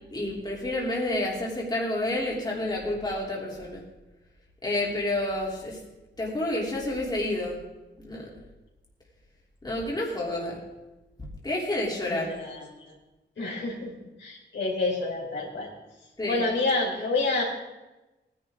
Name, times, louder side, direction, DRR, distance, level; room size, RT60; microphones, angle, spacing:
voice 1, 0.1-3.8 4.6-5.8 6.2-7.6 8.0-8.3 9.6-10.6 11.2-12.3 16.2-16.4, left 1 dB, 20° left, -4 dB, 3.2 m, -29 dB
voice 2, 12.1-12.7 13.4-13.9 14.2-15.7 16.3-17.4, left 3 dB, 70° left, -3 dB, 3.8 m, -28 dB
18.5 x 10.5 x 3.7 m, 1.1 s
wide cardioid pair, 115°, 19 cm